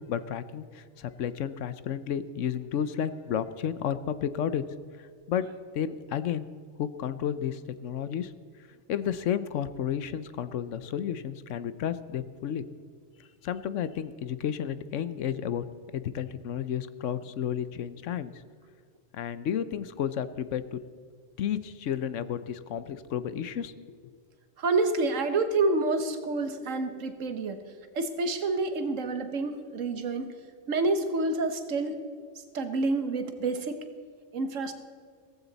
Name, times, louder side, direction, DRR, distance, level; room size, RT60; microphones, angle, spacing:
voice 1, 0.1-4.6 5.3-5.5 5.7-6.5 6.8-8.3 8.9-12.6 13.4-15.6 15.9-18.3 19.1-20.8 21.4-23.7, left 9 dB, 75° left, 14 dB, 1.1 m, -32 dB
voice 2, 24.6-27.6 27.9-30.3 30.7-32.0 32.5-33.8 34.3-34.7, right 3 dB, 90° right, 9 dB, 1.5 m, -28 dB
16.0 x 15.0 x 4.1 m, 2.1 s
omnidirectional pair, 1.3 m